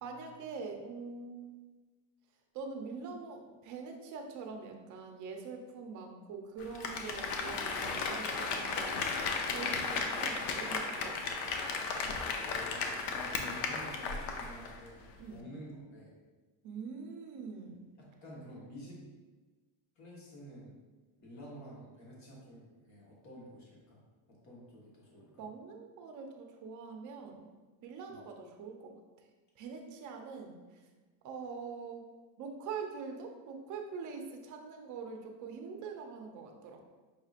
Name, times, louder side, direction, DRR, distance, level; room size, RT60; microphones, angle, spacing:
voice 1, 0.0-1.5 2.5-9.2 9.5-11.2 15.2-15.4 16.6-17.8 25.4-27.5 27.8-28.9 29.6-30.6 31.2-32.0 32.4-36.9, right 5 dB, 45° right, 3 dB, 0.6 m, -44 dB
Applause, 6.6-14.8 15.1-15.2, left 4 dB, 65° left, 0.6 m, -35 dB
voice 2, 12.3-16.1 18.0-19.0 20.0-20.8 21.2-24.0 24.3-25.4 28.1-28.2, equal, 40° left, -4 dB, 1.3 m, -50 dB
5.5 x 2.8 x 2.4 m, 1.3 s
cardioid pair, 140°, 44 cm